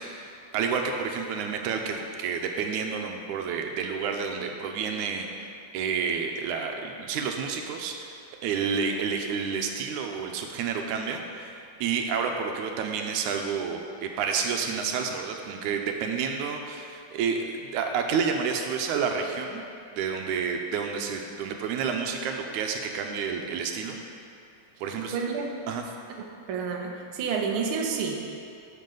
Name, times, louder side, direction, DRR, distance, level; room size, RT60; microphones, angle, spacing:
voice 1, 0.0-5.5 5.7-8.2 8.4-19.6 20.0-24.0 24.8-25.2 25.7-25.8, right 6 dB, 85° right, 3 dB, 2.2 m, -30 dB
voice 2, 25.1-25.5 26.5-28.2, right 5 dB, 60° right, 0 dB, 1.5 m, -29 dB
12.0 x 7.2 x 3.9 m, 2.4 s
omnidirectional pair, 3.4 m